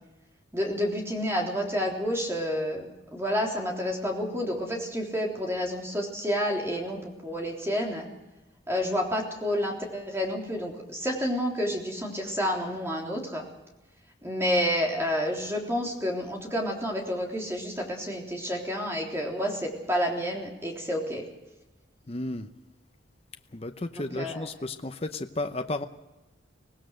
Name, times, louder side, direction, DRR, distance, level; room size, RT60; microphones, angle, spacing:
voice 1, 0.5-8.1 8.7-13.4 14.2-21.2 24.0-24.5, equal, 15° right, -1 dB, 3.7 m, -29 dB
voice 2, 22.1-22.5 23.5-25.8, left 2 dB, 30° left, 7 dB, 0.8 m, -33 dB
24.5 x 18.0 x 6.4 m, 1.0 s
head